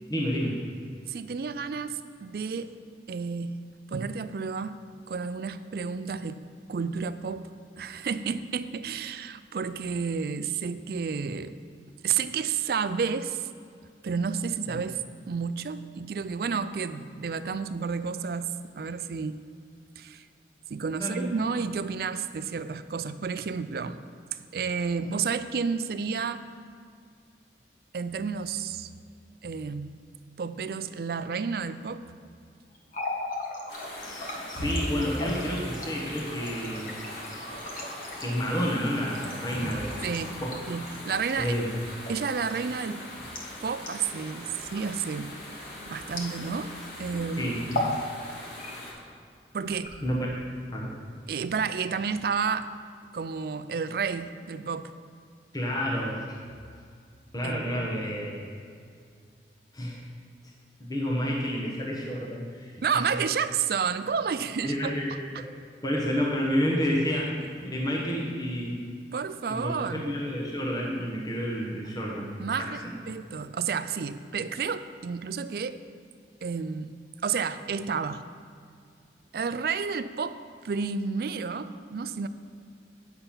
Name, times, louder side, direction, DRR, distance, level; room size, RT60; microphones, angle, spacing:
voice 1, 0.1-0.6 14.7-14.8 21.0-21.3 34.0-37.0 38.2-40.0 40.4-40.5 41.4-41.7 47.4-47.9 50.0-50.2 50.7-50.9 55.5-56.4 57.3-58.5 59.7-60.0 60.8-63.1 64.6-65.1 65.8-67.3 67.6-68.8 69.5-72.3 72.6-72.9, equal, 20° left, -3 dB, 1.1 m, -30 dB
voice 2, 1.1-2.7 3.1-3.6 3.9-4.8 5.1-6.4 6.7-7.5 7.8-11.6 12.0-13.5 14.0-18.5 18.8-19.4 20.0-20.3 20.7-24.0 24.3-26.4 27.9-28.9 29.4-30.0 30.4-32.0 40.0-40.4 40.7-41.5 42.1-43.1 43.6-45.4 45.9-48.0 49.5-49.9 51.3-52.6 53.1-54.9 57.4-57.9 62.8-64.9 67.3-67.5 69.1-70.1 72.4-75.8 76.4-77.0 77.2-78.2 79.3-80.4 80.6-82.3, right 5 dB, 55° right, 12 dB, 0.4 m, -31 dB
Water tap faucet, 32.8-46.8 47.1-47.3 47.6-48.0 48.4-49.0 49.7-50.4, left 1 dB, 45° left, 1.3 m, -37 dB
sound 1, 33.7-48.9, left 1 dB, 70° left, 2.6 m, -42 dB
8.8 x 6.7 x 5.7 m, 2.3 s
head